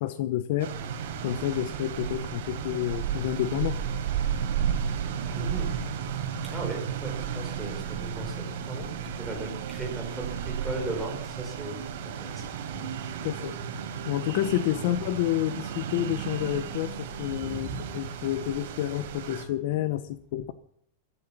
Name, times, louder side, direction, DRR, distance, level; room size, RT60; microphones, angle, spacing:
voice 1, 0.0-0.7 1.2-3.8 13.2-13.6 14.1-17.7 17.9-20.5, left 13 dB, 45° left, 13 dB, 0.9 m, -29 dB
sound 1, 0.6-19.4, right 7 dB, 50° right, 4.2 m, -34 dB
sound 2, 1.3-18.0, right 10 dB, 70° right, 1.8 m, -41 dB
voice 2, 5.3-5.7 6.4-8.9 9.1-12.9 14.8-14.9 17.3-17.8, right 2 dB, 5° right, -2 dB, 4.6 m, -37 dB
15.0 x 13.0 x 7.3 m, 0.66 s
supercardioid pair, 180°, 0 cm